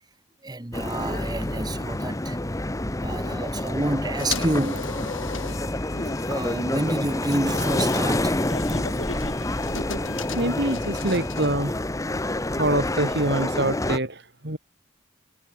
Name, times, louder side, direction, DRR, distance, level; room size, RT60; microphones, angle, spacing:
voice 1, 0.4-2.4 3.0-4.9 6.2-8.4, right 1 dB, 20° right, 1.1 m, -28 dB
sound 1, 0.7-14.0, left 1 dB, 15° left, 1.0 m, -28 dB
sound 2, 4.2-11.5, left 5 dB, 80° left, 2.8 m, -37 dB
voice 2, 10.3-11.8 12.6-14.6, right 1 dB, 55° right, 4.7 m, -25 dB
head